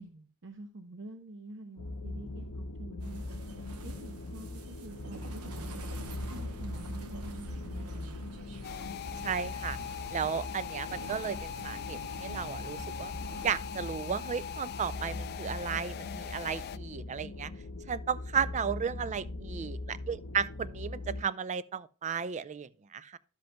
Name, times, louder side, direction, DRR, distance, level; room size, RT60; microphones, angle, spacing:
voice 1, 0.0-3.4 3.8-5.8 6.2-8.2 18.8-19.7, right 2 dB, 55° right, 0.7 m, -48 dB
sound 1, 1.8-21.2, left 2 dB, 85° left, 0.6 m, -41 dB
sound 2, 3.0-13.6, right 2 dB, 80° right, 1.0 m, -47 dB
sound 3, 8.6-16.8, left 9 dB, 45° left, 0.3 m, -41 dB
voice 2, 9.2-9.8 10.1-13.1 13.4-17.5 17.9-23.2, right 6 dB, 30° right, 0.4 m, -34 dB
11.5 x 7.8 x 2.2 m
head